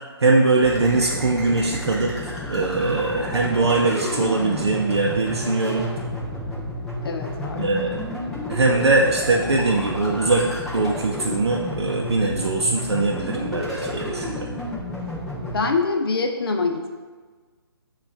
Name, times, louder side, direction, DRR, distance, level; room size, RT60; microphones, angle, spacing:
voice 1, 0.2-2.1 2.5-5.9 7.6-8.0 8.5-10.4 10.7-14.5, right 3 dB, 85° right, -1 dB, 0.5 m, -21 dB
sound 1, 0.6-15.6, left 1 dB, ahead, 0.4 m, -31 dB
voice 2, 7.0-7.7 15.4-16.9, left 4 dB, 60° left, 4 dB, 0.6 m, -25 dB
6.1 x 2.4 x 3.3 m, 1.4 s
figure-of-eight pair, 150°, 14 cm